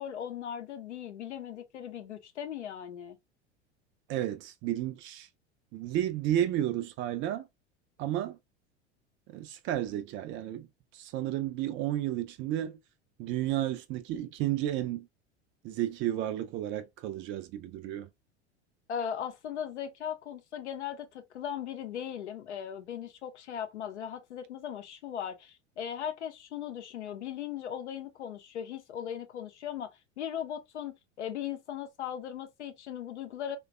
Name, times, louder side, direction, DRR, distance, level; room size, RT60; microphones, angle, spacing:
voice 1, 0.0-3.2 18.9-29.9 30.2-33.6, left 9 dB, 80° left, 0.6 m, -38 dB
voice 2, 4.1-5.3 5.7-7.5 8.0-8.4 9.3-10.7 10.9-12.8 13.2-15.1 15.6-18.1, right 12 dB, 35° right, 0.4 m, -32 dB
3.3 x 2.2 x 2.2 m
figure-of-eight pair, 80°, 34 cm